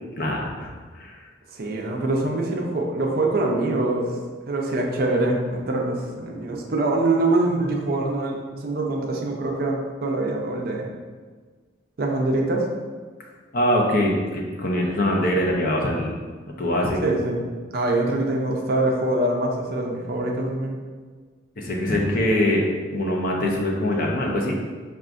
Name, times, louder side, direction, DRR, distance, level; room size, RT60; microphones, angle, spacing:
voice 1, 0.2-0.7 0.9-1.2 13.5-16.1 16.6-17.1 21.6-22.6 22.9-24.5, left 1 dB, 45° left, -1 dB, 0.6 m, -23 dB
voice 2, 1.5-4.2 4.5-10.9 12.0-12.7 17.0-17.4 17.7-20.8, right 2 dB, 50° right, 0 dB, 0.5 m, -24 dB
5.8 x 2.4 x 2.5 m, 1.5 s
head